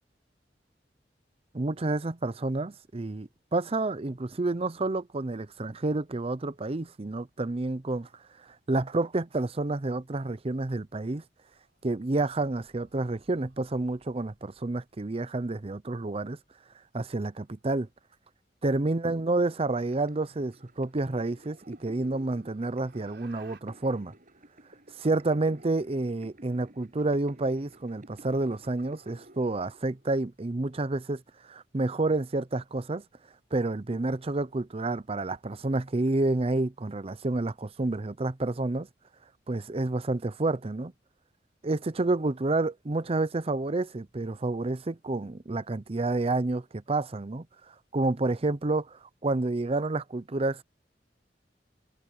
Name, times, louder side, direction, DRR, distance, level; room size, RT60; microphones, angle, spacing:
voice 1, 1.5-8.1 8.4-11.2 11.8-16.4 16.9-17.9 18.6-24.1 25.0-31.2 31.5-33.0 33.5-38.9 39.5-40.9 41.6-47.4 47.9-50.6, right 2 dB, 35° right, 0.7 m, -29 dB
sound 1, 11.4-14.9 17.3-17.7 19.8-19.9 20.4-20.5 21.0-23.6, right 4 dB, 75° right, 7.0 m, -61 dB
sound 2, 19.3-30.2, right 1 dB, 50° right, 7.9 m, -52 dB
head